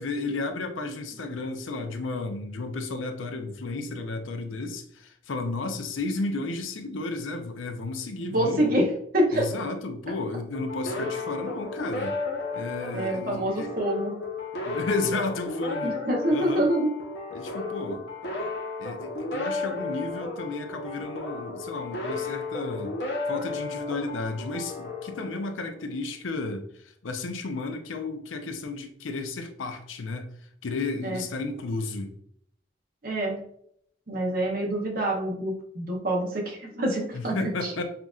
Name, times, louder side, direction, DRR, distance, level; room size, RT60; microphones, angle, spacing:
voice 1, 0.0-8.7 9.3-12.2 12.5-13.7 14.7-16.0 16.3-16.7 17.3-18.1 18.8-22.9 23.3-30.3 30.6-32.1 37.1-37.8, left 3 dB, 90° left, 6 dB, 0.5 m, -33 dB
voice 2, 8.2-8.9 9.1-9.5 12.9-14.1 15.8-16.9 31.0-31.2 33.0-33.4 34.1-37.3, right 1 dB, 50° right, 0 dB, 0.8 m, -26 dB
sound 1, 10.5-25.9, left 3 dB, 60° left, 0.9 m, -34 dB
5.7 x 2.5 x 2.3 m, 0.69 s
head